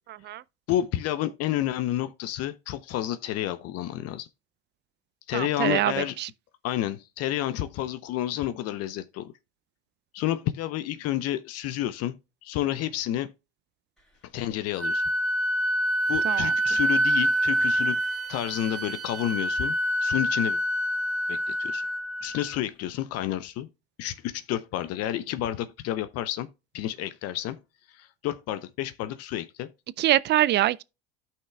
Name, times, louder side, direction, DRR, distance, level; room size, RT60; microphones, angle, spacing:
voice 1, 0.7-4.3 5.3-6.2 6.6-9.3 10.1-12.2 12.4-13.3 14.3-15.0 16.1-18.0 18.3-19.8 20.0-20.6 21.3-21.8 22.2-23.7 24.0-26.5 26.7-27.6 27.9-29.7, left 13 dB, 55° left, 0.7 m, -30 dB
voice 2, 5.3-6.3 16.2-16.5 30.0-30.8, right 14 dB, 35° right, 0.4 m, -24 dB
Wind instrument woodwind instrument, 14.8-22.5, right 1 dB, ahead, 3.1 m, -26 dB
13.5 x 5.8 x 2.2 m
hypercardioid pair, 80°, 31 cm